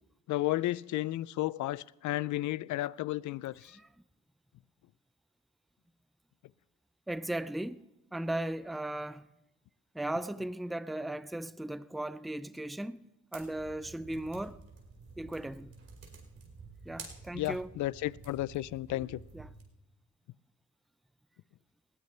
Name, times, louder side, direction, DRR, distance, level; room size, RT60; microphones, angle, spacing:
voice 1, 0.3-3.8 17.3-19.2, left 16 dB, 70° left, 0.5 m, -33 dB
voice 2, 7.1-9.3 9.9-14.6 15.2-15.7 16.9-17.7 19.3-19.5, right 1 dB, ahead, 0.4 m, -37 dB
sound 1, 13.3-19.6, right 4 dB, 50° right, 4.8 m, -51 dB
20.0 x 15.5 x 3.3 m
cardioid pair, 90°, 30 cm